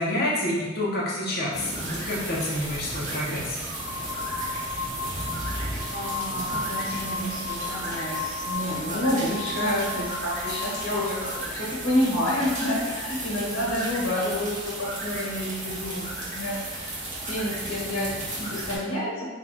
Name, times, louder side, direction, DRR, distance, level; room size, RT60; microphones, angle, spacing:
voice 1, 0.0-3.6, left 1 dB, 50° left, -6 dB, 0.9 m, -28 dB
sound 1, 1.5-18.8, right 1 dB, 40° right, 1.0 m, -34 dB
sound 2, 3.5-11.3, left 3 dB, 10° right, 0.7 m, -35 dB
voice 2, 5.9-19.3, left 1 dB, 70° left, -7 dB, 1.4 m, -29 dB
3.8 x 2.4 x 4.5 m, 1.2 s
head